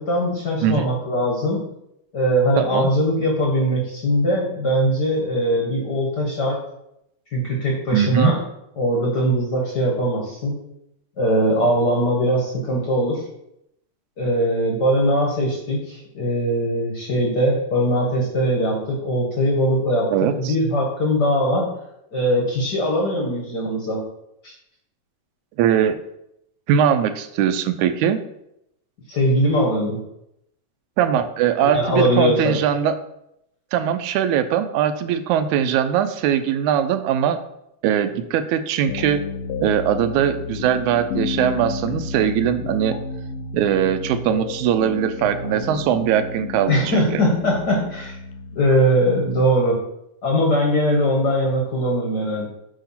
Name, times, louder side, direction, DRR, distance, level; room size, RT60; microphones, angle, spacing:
voice 1, 0.0-1.6 2.1-6.6 7.3-8.4 8.8-10.6 11.2-13.2 14.2-21.7 22.1-24.0 24.4-24.5 29.1-30.0 31.7-32.6 46.7-48.2 48.5-49.8 50.2-52.5, equal, 50° left, -2 dB, 1.4 m, -21 dB
voice 2, 2.6-2.9 7.9-8.3 20.1-20.6 25.6-26.0 26.7-28.2 31.0-32.9 33.7-37.4 37.8-39.2 39.6-43.0 43.5-47.0, right 9 dB, 90° right, 10 dB, 2.0 m, -20 dB
sound 1, 38.9-48.8, left 4 dB, 75° left, 1.6 m, -31 dB
8.5 x 3.0 x 5.7 m, 0.80 s
omnidirectional pair, 3.3 m